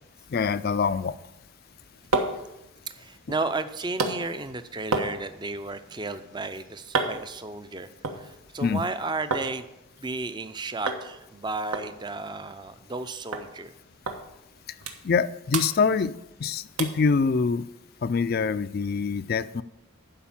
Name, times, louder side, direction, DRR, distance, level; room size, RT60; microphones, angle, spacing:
voice 1, 0.3-1.1 8.6-8.8 15.0-16.1 16.4-17.7 18.0-19.6, left 5 dB, 45° left, 15 dB, 0.4 m, -24 dB
sound 1, 1.6-9.5 9.8-10.5 10.9-11.1 11.3-11.4 11.7-13.0 13.3-13.5 14.1-14.2 14.6-15.2 15.5-16.4 16.8-17.1 17.6-17.7, right 3 dB, 85° right, 1.3 m, -32 dB
voice 2, 2.9-9.7 10.0-13.7, right 3 dB, 20° right, 11 dB, 0.5 m, -33 dB
11.5 x 5.1 x 7.2 m, 0.89 s
head